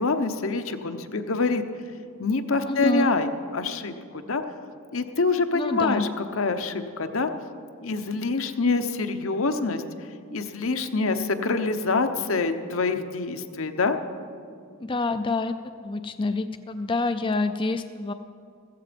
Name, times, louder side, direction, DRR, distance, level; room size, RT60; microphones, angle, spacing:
voice 1, 0.0-1.6 2.2-3.9 4.3-4.4 4.9-6.1 6.4-7.3 7.8-9.8 10.3-14.0, left 3 dB, 75° left, 8 dB, 0.9 m, -25 dB
voice 2, 2.6-3.1 5.5-6.1 14.8-15.5 15.8-18.1, left 3 dB, 25° left, 9 dB, 0.4 m, -27 dB
15.0 x 15.0 x 5.2 m, 2.3 s
head